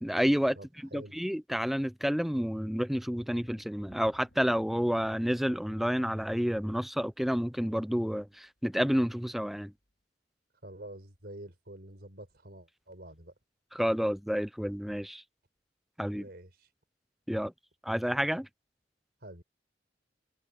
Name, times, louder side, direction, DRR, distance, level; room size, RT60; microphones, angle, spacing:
voice 1, 0.0-9.7 13.7-15.2 16.0-16.3 17.3-17.5 17.8-18.5, equal, ahead, 0.4 m, -30 dB
sound 1, 3.0-8.5 8.9-9.1 9.5-9.6, equal, 85° left, 4.0 m, -60 dB
voice 2, 10.6-13.3 16.1-16.7 19.2-19.4, right 1 dB, 60° right, 4.8 m, -47 dB
head